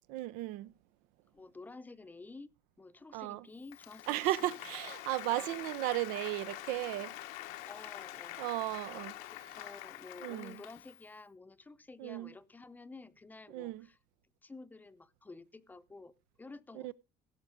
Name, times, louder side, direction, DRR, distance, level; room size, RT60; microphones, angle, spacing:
voice 1, 0.1-0.7 3.1-3.4 4.1-7.1 8.4-9.2 10.2-10.5 12.0-12.3 13.5-13.9 16.8-16.9, right 16 dB, 85° right, 0.6 m, -35 dB
voice 2, 1.3-2.5 2.8-4.6 5.3-5.7 7.7-8.8 9.2-14.0 14.4-16.9, left 3 dB, 10° left, 0.7 m, -51 dB
Applause, 3.6-11.1, left 15 dB, 85° left, 1.1 m, -46 dB
16.0 x 6.0 x 5.1 m
cardioid pair, 135°, 14 cm